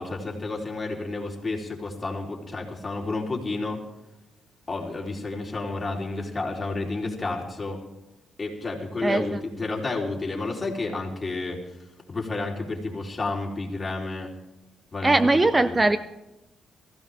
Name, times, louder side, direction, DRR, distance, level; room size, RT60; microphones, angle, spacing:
voice 1, 0.0-3.8 4.7-7.8 8.4-11.6 12.1-14.3 14.9-15.2 15.5-15.8, left 3 dB, 25° left, -1 dB, 4.0 m, -31 dB
voice 2, 9.0-9.4 15.0-16.0, right 2 dB, 20° right, 13 dB, 0.6 m, -20 dB
19.5 x 16.0 x 3.6 m, 1.0 s
cardioid pair, 90°, 0 cm